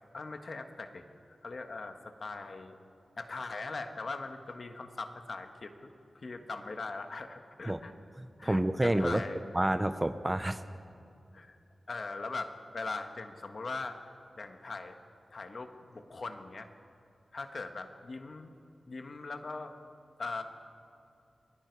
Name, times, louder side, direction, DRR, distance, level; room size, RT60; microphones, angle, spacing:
voice 1, 0.1-2.8 3.2-7.9 8.4-9.4 11.3-11.6 11.9-14.0 14.4-14.9 15.3-16.7 17.3-18.5 18.9-19.7 20.2-20.4, left 3 dB, 55° left, 6 dB, 1.5 m, -40 dB
voice 2, 8.4-9.2 9.5-10.6, right 1 dB, 15° right, 11 dB, 0.6 m, -28 dB
28.0 x 20.5 x 4.7 m, 2.5 s
wide cardioid pair, 110°, 0 cm